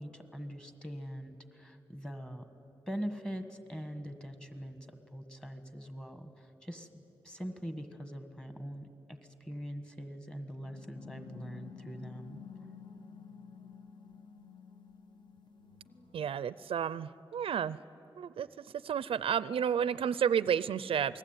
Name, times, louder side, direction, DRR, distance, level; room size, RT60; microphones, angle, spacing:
voice 1, 0.0-2.4 2.9-12.4, equal, 10° left, 8 dB, 1.6 m, -43 dB
sound 1, 10.5-16.2, left 6 dB, 55° left, 1.6 m, -51 dB
voice 2, 16.1-17.8 18.2-18.5 18.8-21.2, right 8 dB, 80° right, 17 dB, 0.5 m, -31 dB
28.0 x 20.0 x 9.1 m, 2.9 s
wide cardioid pair, 155°, 9 cm